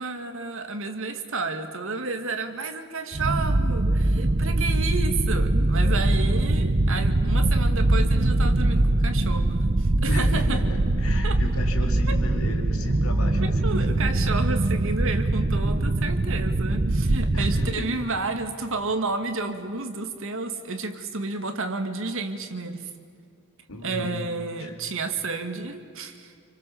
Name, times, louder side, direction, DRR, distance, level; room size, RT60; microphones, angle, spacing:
voice 1, 0.0-10.6 11.2-11.4 12.1-12.2 13.4-22.9 23.8-26.5, right 3 dB, 60° right, 7 dB, 2.1 m, -31 dB
sound 1, 3.1-17.8, right 2 dB, 35° right, 0.7 m, -22 dB
voice 2, 10.1-13.5 17.3-17.9 23.7-24.1 24.6-24.7, left 1 dB, 70° left, 3 dB, 4.2 m, -35 dB
29.0 x 25.5 x 7.2 m, 2.4 s
head